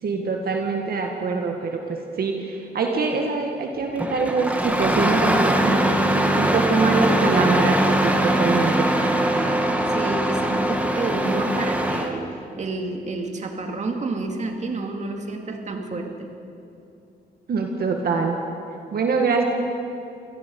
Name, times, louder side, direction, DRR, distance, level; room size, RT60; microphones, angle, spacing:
voice 1, 0.0-6.0 6.3-8.9 17.5-18.4 18.9-19.4, right 4 dB, 60° right, 2 dB, 1.8 m, -24 dB
Engine starting, 4.0-12.1, right 1 dB, 10° right, 1.9 m, -21 dB
voice 2, 9.9-12.3 12.6-16.3, right 3 dB, 40° right, 3 dB, 2.2 m, -29 dB
27.0 x 18.0 x 5.4 m, 2.7 s
cardioid pair, 115°, 18 cm